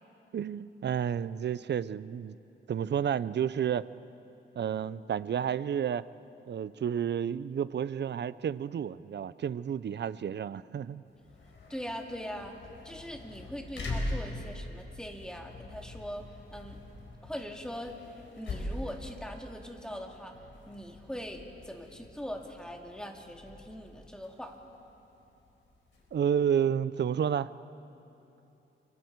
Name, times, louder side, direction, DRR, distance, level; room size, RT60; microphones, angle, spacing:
voice 1, 0.3-2.4 2.7-3.9 4.6-6.0 6.5-11.0 26.1-27.5, right 8 dB, 55° right, 17 dB, 0.5 m, -31 dB
sound 1, 11.1-26.4, left 1 dB, 65° left, 4.4 m, -43 dB
voice 2, 11.7-12.5 12.8-16.2 16.5-16.8 17.2-18.0 18.4-20.3 20.7-24.5, equal, 5° left, 2 dB, 2.1 m, -41 dB
29.5 x 24.0 x 4.6 m, 3.0 s
wide cardioid pair, 120°, 21 cm